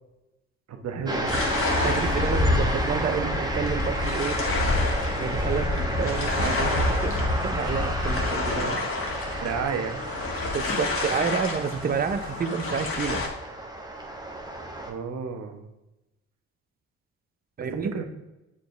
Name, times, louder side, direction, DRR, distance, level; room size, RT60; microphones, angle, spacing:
voice 1, 0.7-1.4 2.9-3.1 9.4-10.0 14.9-15.7 17.7-18.0, right 5 dB, 60° right, 5 dB, 1.1 m, -32 dB
sound 1, 1.0-14.9, right 1 dB, 15° right, 1.0 m, -32 dB
sound 2, 1.3-13.3, left 2 dB, 45° left, 1.7 m, -28 dB
voice 2, 1.8-4.4 5.2-8.8 10.5-13.2 17.6-17.9, right 6 dB, 30° right, 10 dB, 0.6 m, -29 dB
8.0 x 4.9 x 3.3 m, 0.98 s
cardioid pair, 90°, 30 cm